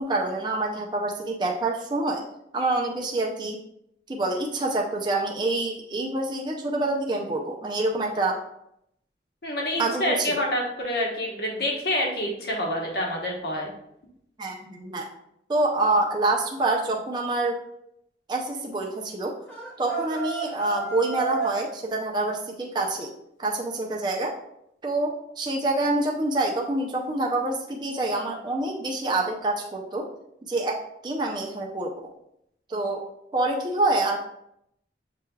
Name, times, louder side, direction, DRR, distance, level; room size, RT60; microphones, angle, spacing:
voice 1, 0.0-2.2 2.5-3.6 4.1-8.4 9.8-10.4 14.4-15.1 15.5-17.6 18.3-19.3 19.8-23.1 23.4-24.3 24.8-30.1 30.4-31.9 32.7-33.0 33.3-34.2, right 2 dB, 25° right, -1 dB, 0.4 m, -26 dB
voice 2, 9.4-13.7, left 1 dB, 60° left, -1 dB, 1.0 m, -27 dB
sound 1, 19.5-21.6, right 4 dB, 10° left, 0.8 m, -32 dB
6.7 x 3.2 x 2.3 m, 0.77 s
head